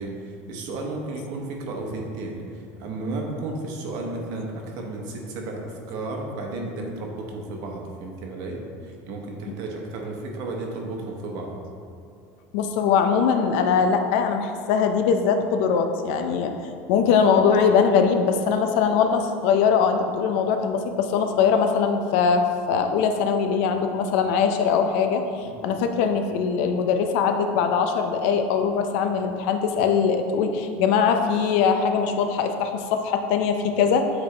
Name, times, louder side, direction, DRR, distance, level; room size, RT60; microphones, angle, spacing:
voice 1, 0.0-11.6 25.4-25.5, right 2 dB, 65° right, 0 dB, 1.1 m, -33 dB
voice 2, 12.5-16.5 16.9-34.1, left 6 dB, 70° left, 6 dB, 0.5 m, -21 dB
8.0 x 3.5 x 3.3 m, 2.4 s
supercardioid pair, 120°, 7 cm